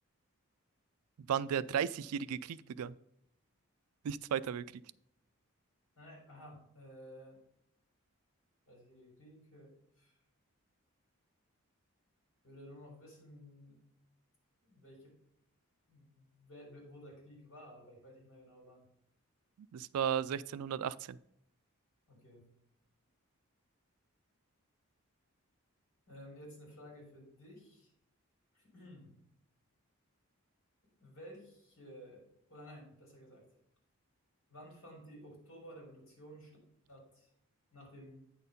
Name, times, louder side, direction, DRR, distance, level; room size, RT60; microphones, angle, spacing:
voice 1, 1.3-2.9 4.0-4.7 19.7-21.2, right 8 dB, 90° right, 18 dB, 0.3 m, -35 dB
voice 2, 6.0-7.4 8.7-10.2 12.4-13.8 14.6-15.1 15.9-18.9 22.1-22.5 26.1-27.9 28.5-29.1 31.0-32.2 32.5-33.4 34.5-36.5 36.9-37.3 37.7-38.2, equal, 65° left, -1 dB, 3.7 m, -54 dB
8.9 x 4.5 x 5.2 m, 0.75 s
head